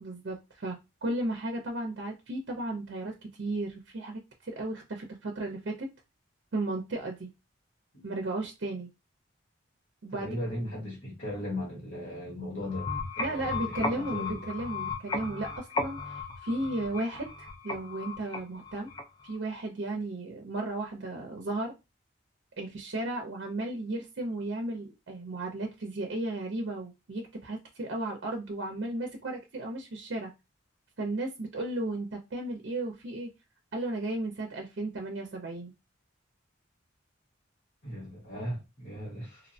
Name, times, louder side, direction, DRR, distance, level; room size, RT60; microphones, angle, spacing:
voice 1, 0.0-5.9 6.5-7.3 8.0-8.9 10.0-10.4 13.2-18.9 19.2-21.7 22.6-30.3 31.0-33.3 33.7-35.7, right 2 dB, 65° right, 0.5 m, -34 dB
voice 2, 10.1-14.4 37.8-39.5, left 1 dB, 80° left, 1.5 m, -37 dB
sound 1, 12.6-19.4, left 3 dB, 20° left, 0.3 m, -36 dB
2.7 x 2.1 x 2.6 m
head